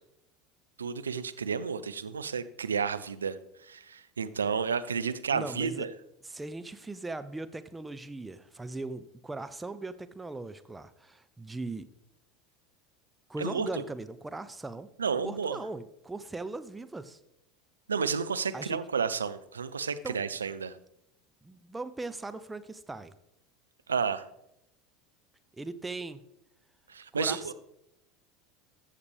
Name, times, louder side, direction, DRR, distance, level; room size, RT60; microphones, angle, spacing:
voice 1, 0.8-5.9 13.4-13.8 15.0-15.6 17.9-20.8 23.9-24.3 26.9-27.5, right 6 dB, 80° right, 12 dB, 0.4 m, -31 dB
voice 2, 5.3-5.9 6.2-11.9 13.3-14.9 15.2-17.2 18.5-18.8 20.0-20.2 21.4-23.1 25.6-26.2 27.2-27.5, right 2 dB, 10° right, 11 dB, 0.5 m, -39 dB
14.5 x 6.6 x 3.4 m, 0.82 s
figure-of-eight pair, 75°, 0 cm